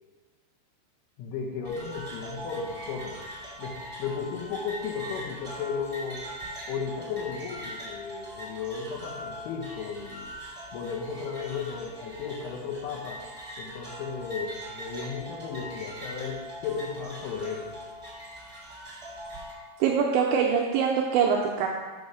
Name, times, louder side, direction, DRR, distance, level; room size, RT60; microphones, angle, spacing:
voice 1, 1.2-3.2 3.6-6.3 6.7-10.3 10.7-13.2 13.6-17.7, left 5 dB, 80° left, 0 dB, 3.3 m, -35 dB
sound 1, 1.6-19.5, equal, 45° right, 0.6 m, -41 dB
voice 2, 19.8-21.7, right 6 dB, 90° right, 0 dB, 2.6 m, -23 dB
7.0 x 5.4 x 6.1 m, 1.4 s
omnidirectional pair, 5.8 m